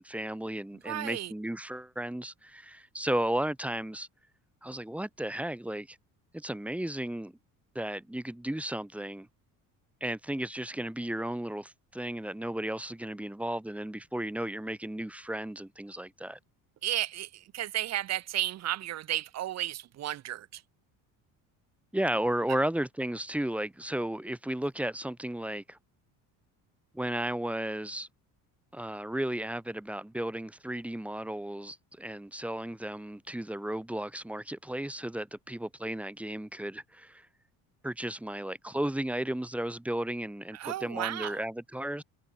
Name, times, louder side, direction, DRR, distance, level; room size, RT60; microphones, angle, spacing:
voice 1, 0.0-4.1 4.6-6.0 6.3-7.3 7.7-9.3 10.0-16.4 21.9-25.8 26.9-28.1 28.7-37.3 37.8-42.0, right 1 dB, 5° right, 2.6 m, -34 dB
voice 2, 0.8-1.3 16.8-20.6 40.5-41.4, right 13 dB, 50° right, 1.9 m, -33 dB
cardioid pair, 145°, 34 cm